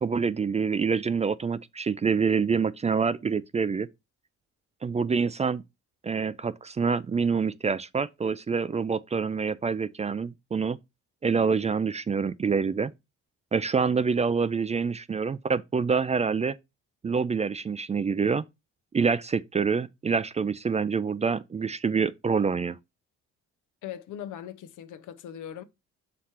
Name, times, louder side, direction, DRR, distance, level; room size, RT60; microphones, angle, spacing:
voice 1, 0.0-3.9 4.8-5.6 6.0-10.8 11.2-12.9 13.5-16.6 17.0-18.4 18.9-22.8, right 5 dB, 25° right, 0.4 m, -26 dB
voice 2, 23.8-25.6, left 10 dB, 85° left, 0.8 m, -39 dB
5.9 x 3.2 x 5.7 m
cardioid pair, 90°, 30 cm